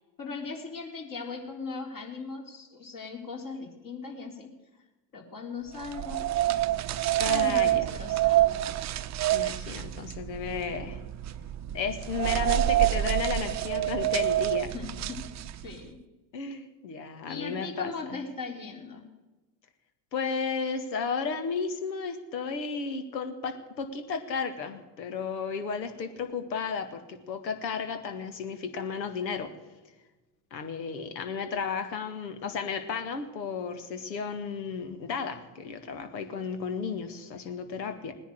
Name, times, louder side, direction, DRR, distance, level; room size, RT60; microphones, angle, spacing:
voice 1, 0.2-4.5 5.1-6.3 7.3-8.6 14.7-15.2 15.5-16.0 17.3-19.1, left 4 dB, 40° left, 1 dB, 3.8 m, -39 dB
sound 1, 5.8-15.8, right 13 dB, 35° right, 0.8 m, -27 dB
voice 2, 7.2-7.8 9.3-11.0 11.7-14.7 16.3-18.2 20.1-29.5 30.5-38.1, left 5 dB, 85° left, 8 dB, 2.0 m, -33 dB
19.0 x 10.5 x 6.5 m, 1.2 s
hypercardioid pair, 75°, 50 cm